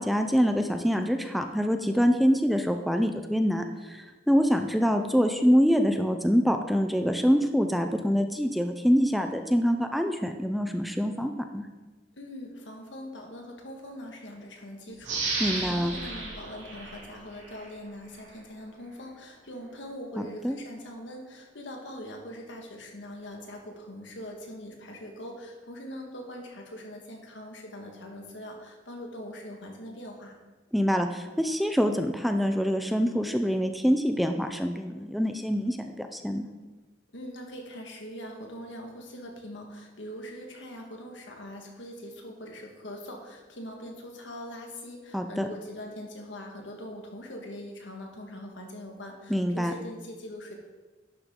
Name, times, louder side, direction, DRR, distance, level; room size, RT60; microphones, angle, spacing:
voice 1, 0.0-11.7 15.4-15.9 20.2-20.6 30.7-36.5 45.1-45.5 49.3-49.7, equal, ahead, 6 dB, 0.4 m, -25 dB
voice 2, 12.2-30.3 37.1-50.5, left 1 dB, 80° left, 2 dB, 1.6 m, -42 dB
sound 1, 15.0-17.7 18.2-18.3, right 3 dB, 80° right, 2.8 m, -34 dB
11.0 x 6.6 x 3.7 m, 1.2 s
head